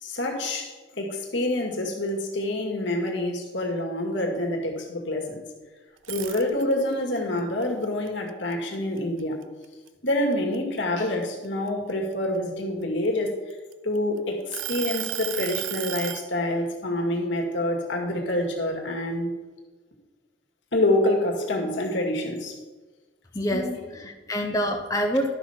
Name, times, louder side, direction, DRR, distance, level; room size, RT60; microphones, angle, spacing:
voice 1, 0.0-5.4 6.1-9.4 10.0-13.4 13.8-19.4 20.7-22.6 23.5-23.8, left 1 dB, 70° left, 1 dB, 2.1 m, -27 dB
sound 1, 6.0-6.9 7.4-9.2 9.6-9.9 10.3-12.1 12.8-14.0 14.5-16.3, right 13 dB, 85° right, 0.6 m, -33 dB
voice 2, 23.3-25.3, equal, 20° left, 2 dB, 0.8 m, -26 dB
12.0 x 6.2 x 5.8 m, 1.3 s
head